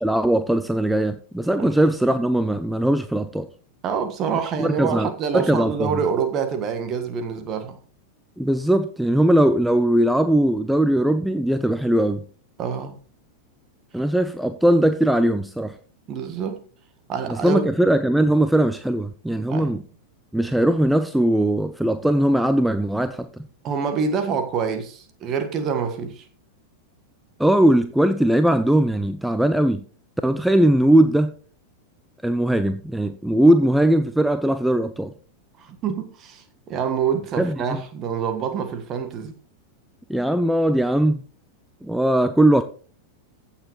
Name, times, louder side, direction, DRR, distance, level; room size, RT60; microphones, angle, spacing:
voice 1, 0.0-3.5 4.6-5.1 5.3-5.9 8.4-12.2 13.9-15.7 17.3-19.8 20.3-23.3 27.4-29.8 30.2-31.3 32.2-35.1 37.4-37.8 40.1-41.2 41.8-42.6, right 1 dB, ahead, 0.5 m, -19 dB
voice 2, 3.8-7.8 12.6-13.0 16.1-16.6 17.1-17.7 19.5-19.7 23.6-26.2 35.6-39.3, right 6 dB, 30° right, 1.5 m, -26 dB
15.0 x 7.3 x 3.1 m
figure-of-eight pair, 90°, 0 cm